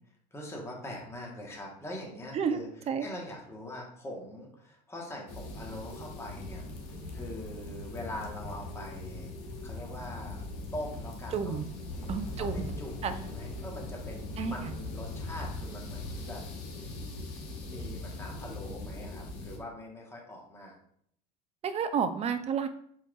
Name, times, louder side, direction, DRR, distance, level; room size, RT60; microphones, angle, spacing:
voice 1, 0.3-2.7 3.0-9.3 9.6-10.4 10.7-11.6 11.9-16.4 17.6-20.8, left 1 dB, 10° left, -2 dB, 1.2 m, -43 dB
sound 1, 5.3-19.6, left 2 dB, 75° left, 1.2 m, -40 dB
voice 2, 11.3-11.7 12.1-12.7 13.0-13.2 14.4-14.7 21.6-22.7, right 6 dB, 30° right, 10 dB, 0.5 m, -31 dB
4.5 x 4.4 x 2.4 m, 0.66 s
supercardioid pair, 95°, 21 cm